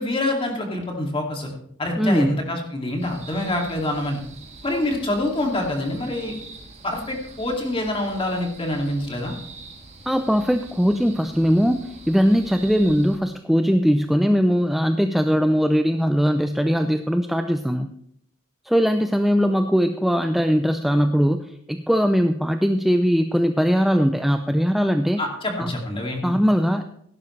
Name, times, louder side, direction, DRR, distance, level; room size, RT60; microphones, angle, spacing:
voice 1, 0.0-1.5 1.8-4.2 4.6-6.3 6.8-9.4 25.2-26.4, left 1 dB, 25° left, 1 dB, 2.4 m, -26 dB
voice 2, 2.0-2.4 10.1-17.9 18.7-25.2 25.6-25.7 26.2-26.9, equal, ahead, 7 dB, 0.4 m, -20 dB
sound 1, 3.0-13.2, right 3 dB, 35° right, 1.6 m, -44 dB
17.0 x 11.0 x 3.2 m, 0.69 s
head